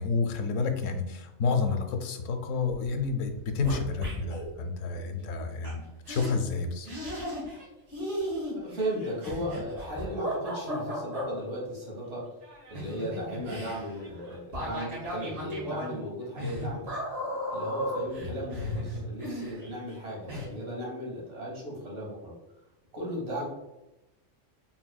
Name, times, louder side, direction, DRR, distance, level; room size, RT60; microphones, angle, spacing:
voice 1, 0.0-6.9, left 4 dB, 85° left, 6 dB, 0.9 m, -30 dB
sound 1, 3.0-3.1 3.2-4.5 5.6-5.7 6.1-6.3 6.9-7.7 7.9-11.3 12.4-20.0 20.3-20.5, equal, 85° right, 2.0 m, -35 dB
voice 2, 8.5-12.2 12.7-16.9 17.5-22.3 22.9-23.5, equal, 70° right, -4 dB, 1.7 m, -36 dB
4.4 x 3.5 x 2.3 m, 0.98 s
omnidirectional pair, 1.3 m